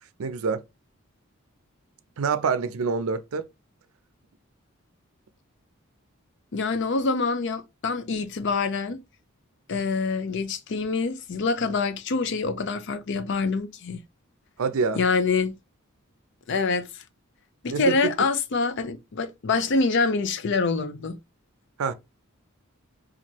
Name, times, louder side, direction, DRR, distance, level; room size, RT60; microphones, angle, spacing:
voice 1, 0.2-0.6 2.2-3.5 14.6-15.0 17.7-18.1 21.8-21.9, right 5 dB, 85° right, 0.5 m, -26 dB
voice 2, 6.5-9.0 9.7-14.0 14.9-15.5 16.5-16.9 17.6-21.2, left 4 dB, 60° left, 0.5 m, -25 dB
2.9 x 2.5 x 4.3 m
head